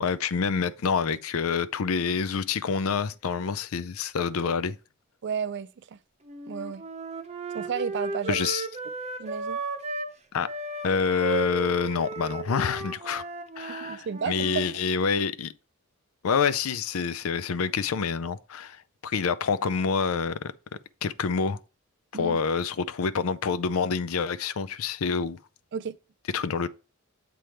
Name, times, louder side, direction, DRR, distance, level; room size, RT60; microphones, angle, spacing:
voice 1, 0.0-4.8 8.3-8.7 10.3-10.5 10.8-13.2 13.6-15.5 16.2-20.5 21.0-21.6 22.1-25.4 26.3-26.7, left 5 dB, 70° left, 0.5 m, -27 dB
voice 2, 5.2-6.0 6.5-6.8 7.5-8.4 9.2-9.6 13.7-14.6 22.1-22.4 25.7-25.9, right 7 dB, 55° right, 0.4 m, -32 dB
Wind instrument woodwind instrument, 6.3-10.1 10.4-14.7, right 3 dB, 30° right, 0.7 m, -35 dB
7.6 x 3.4 x 4.4 m
head